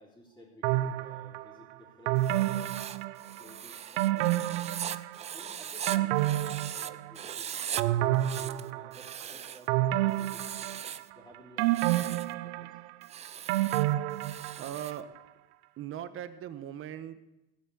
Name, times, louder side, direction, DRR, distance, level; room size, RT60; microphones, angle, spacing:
voice 1, 0.0-4.7 5.3-12.8, equal, 10° left, -6 dB, 3.6 m, -55 dB
sound 1, 0.6-1.4 2.1-3.5 4.0-5.3 5.6-7.3 7.8-9.1 9.7-11.1 11.6-14.8 15.2-15.3, right 14 dB, 85° right, 0.7 m, -29 dB
Writing, 2.2-6.9 7.2-7.8 8.1-9.7 10.1-11.1 11.6-12.3 13.0-15.0, right 9 dB, 20° right, 0.4 m, -40 dB
voice 2, 14.6-15.1 15.8-17.2, right 10 dB, 40° right, 12 dB, 1.1 m, -39 dB
16.0 x 7.5 x 8.5 m, 0.97 s
supercardioid pair, 130°, 33 cm